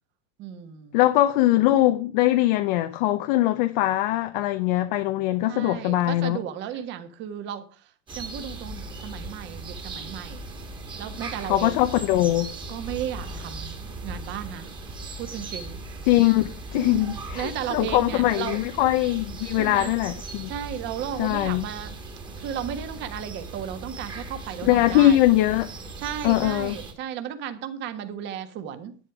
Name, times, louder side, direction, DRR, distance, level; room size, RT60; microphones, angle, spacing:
voice 1, 0.4-1.0 5.5-10.5 10.9-11.8 12.7-13.8 14.0-14.7 15.2-15.8 16.7-19.0 19.5-19.9 20.5-21.9 22.4-25.2 26.0-29.0, right 9 dB, 30° right, 1.5 m, -34 dB
voice 2, 0.9-6.4 11.5-12.5 16.1-20.5 21.2-21.7 24.6-25.7 26.2-26.8, left 15 dB, 45° left, 0.8 m, -21 dB
sound 1, 8.1-26.9, right 3 dB, 10° right, 1.9 m, -38 dB
11.0 x 10.0 x 4.9 m
supercardioid pair, 170°, 37 cm